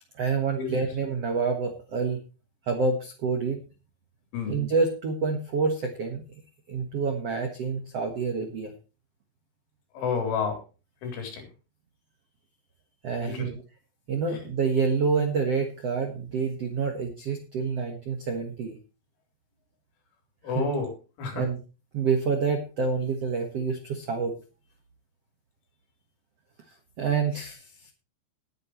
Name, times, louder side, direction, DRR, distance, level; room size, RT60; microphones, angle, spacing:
voice 1, 0.2-2.2 2.6-3.6 4.5-6.2 6.7-8.7 13.0-13.6 14.1-18.7 20.5-20.6 21.3-21.6 21.9-24.4 27.0-27.9, right 5 dB, 75° right, 4 dB, 1.4 m, -27 dB
voice 2, 10.0-10.6 11.0-11.4 13.2-13.5 20.4-20.9 21.2-21.4, left 5 dB, 80° left, 4 dB, 6.1 m, -29 dB
19.5 x 8.8 x 3.1 m, 0.33 s
omnidirectional pair, 5.5 m